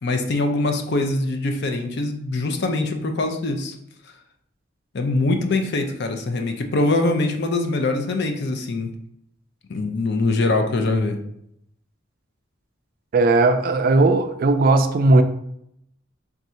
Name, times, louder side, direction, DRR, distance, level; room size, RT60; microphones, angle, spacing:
voice 1, 0.0-3.7 4.9-8.9 9.7-11.2, left 2 dB, 55° left, 0.5 m, -23 dB
voice 2, 13.1-15.2, right 2 dB, 45° right, 0.3 m, -17 dB
3.5 x 2.6 x 4.3 m
head